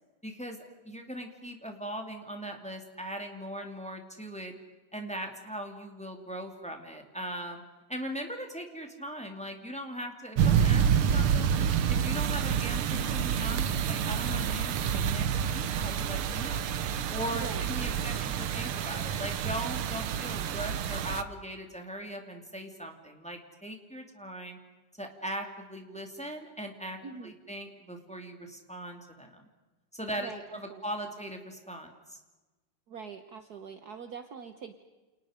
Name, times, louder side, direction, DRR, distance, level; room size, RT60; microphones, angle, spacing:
voice 1, 0.2-0.6 0.8-4.5 4.9-7.6 7.9-11.5 11.9-16.6 17.1-24.6 25.0-29.4 29.9-32.2, equal, 5° left, 3 dB, 2.5 m, -39 dB
sound 1, 10.4-21.2, right 8 dB, 90° right, 1.9 m, -28 dB
voice 2, 17.3-18.3 27.0-27.3 30.2-30.4 30.7-30.8 32.9-34.8, right 6 dB, 55° right, 7 dB, 1.4 m, -44 dB
29.5 x 29.0 x 5.2 m, 1.2 s
omnidirectional pair, 2.4 m